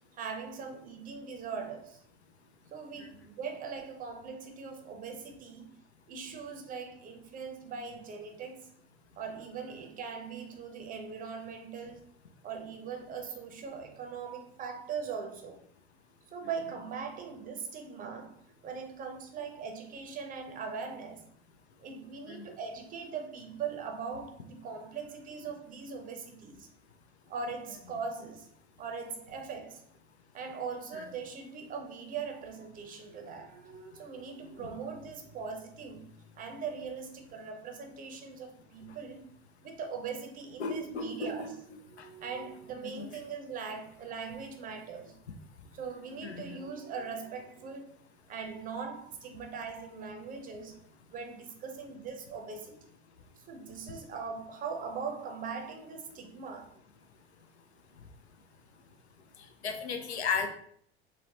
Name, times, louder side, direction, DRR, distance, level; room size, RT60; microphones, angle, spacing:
voice 1, 0.2-2.0 2.7-5.6 6.1-8.7 9.2-12.0 12.4-15.6 16.3-21.2 21.8-26.7 27.3-28.5 28.8-29.8 30.3-36.0 36.4-39.3 39.6-41.5 41.9-45.1 45.7-47.9 48.3-50.8 51.1-52.9 53.5-56.7, right 5 dB, 25° right, 0.6 m, -40 dB
voice 2, 40.6-41.5 42.0-42.1 42.8-43.2 46.2-46.6 59.6-60.5, left 5 dB, 80° left, 0.5 m, -35 dB
3.7 x 2.1 x 2.8 m
figure-of-eight pair, 70°, 33 cm